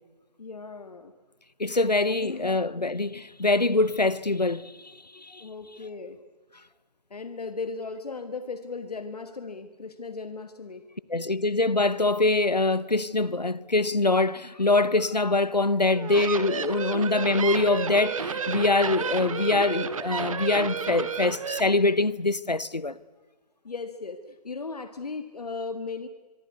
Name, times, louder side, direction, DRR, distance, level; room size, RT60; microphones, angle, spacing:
voice 1, 0.4-1.1 2.1-2.8 5.4-6.2 7.1-10.8 23.6-26.1, left 4 dB, 70° left, 1.8 m, -37 dB
voice 2, 1.6-4.7 5.1-5.4 11.1-23.0, left 2 dB, 90° left, 1.0 m, -24 dB
sound 1, 15.8-21.6, right 6 dB, 55° right, 1.9 m, -31 dB
24.5 x 24.0 x 8.3 m
figure-of-eight pair, 130°, 21 cm